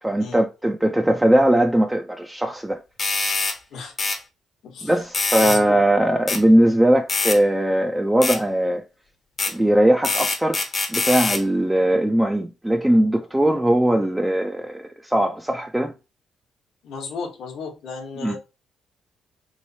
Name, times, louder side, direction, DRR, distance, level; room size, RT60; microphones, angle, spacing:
voice 1, 0.0-2.8 4.8-8.8 9.5-10.6 10.9-15.9 18.2-18.4, right 1 dB, 10° right, 0.4 m, -20 dB
sound 1, 3.0-3.6 4.0-4.2 5.1-5.6 6.3-6.4 7.1-7.4 8.2-8.4 9.4-9.5 10.0-11.4, left 3 dB, 35° left, 0.7 m, -24 dB
voice 2, 5.4-5.8 16.8-18.4, left 5 dB, 75° left, 1.0 m, -34 dB
3.1 x 3.0 x 2.7 m
cardioid pair, 90°, 0 cm